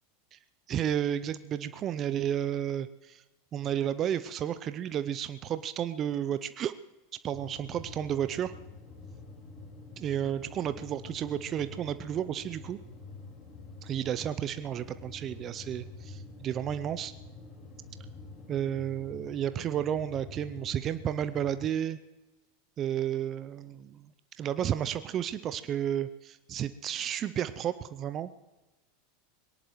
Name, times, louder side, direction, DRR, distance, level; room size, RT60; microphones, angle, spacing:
voice 1, 0.7-3.2 3.5-6.7 7.2-8.5 10.0-12.8 13.8-17.1 18.5-22.0 22.8-24.1 24.4-28.3, right 10 dB, 40° right, 12 dB, 0.6 m, -32 dB
sound 1, 7.3-21.5, left 3 dB, 40° left, 4.9 m, -47 dB
22.0 x 18.0 x 3.2 m, 1.1 s
hypercardioid pair, 90°, 0 cm